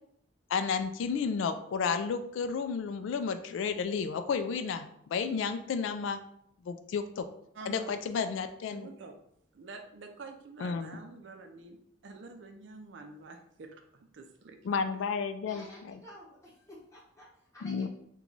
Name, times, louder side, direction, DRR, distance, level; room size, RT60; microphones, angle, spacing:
voice 1, 0.5-6.2 6.6-7.3 7.7-8.9 10.6-11.0 14.6-16.0 17.6-17.9, left 5 dB, 80° left, 9 dB, 0.3 m, -32 dB
voice 2, 7.5-7.9 8.1-8.3 8.7-9.1 9.5-11.8 12.0-14.6, right 3 dB, 65° right, 4 dB, 0.5 m, -47 dB
voice 3, 15.5-17.9, left 1 dB, 15° left, -5 dB, 1.0 m, -52 dB
3.0 x 2.2 x 3.8 m, 0.71 s
head